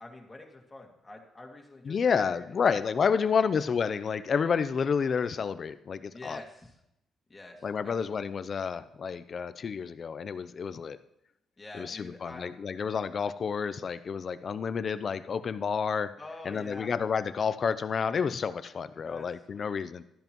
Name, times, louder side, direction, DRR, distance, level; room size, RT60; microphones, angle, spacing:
voice 1, 0.0-2.9 3.1-3.5 6.1-6.8 7.3-8.4 11.6-12.5 16.2-16.9 19.0-19.7, left 2 dB, 20° left, 0 dB, 2.1 m, -47 dB
voice 2, 1.8-6.4 7.6-11.0 11.8-16.1 16.4-20.0, left 6 dB, 45° left, 14 dB, 0.5 m, -30 dB
13.0 x 10.5 x 3.0 m, 0.82 s
cardioid pair, 90°, 0 cm